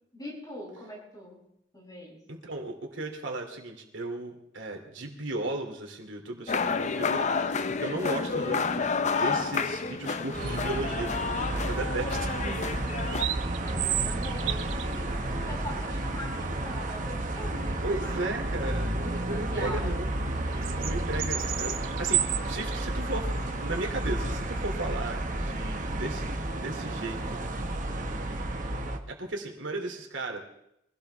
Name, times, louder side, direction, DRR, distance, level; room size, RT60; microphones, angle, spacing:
voice 1, 0.1-1.4 1.7-2.2 13.6-18.3 19.0-19.9 20.5-20.7, equal, 20° left, -5 dB, 7.7 m, -42 dB
voice 2, 2.3-12.4 17.8-20.1 20.8-27.4 29.1-30.4, right 2 dB, 75° right, 2 dB, 2.7 m, -35 dB
sound 1, 6.5-13.3, left 5 dB, 40° left, 0.6 m, -30 dB
sound 2, 10.3-29.0, right 1 dB, 45° right, 1.5 m, -32 dB
sound 3, 12.6-27.8, right 11 dB, 90° right, 0.8 m, -36 dB
23.5 x 17.0 x 3.4 m, 0.79 s
head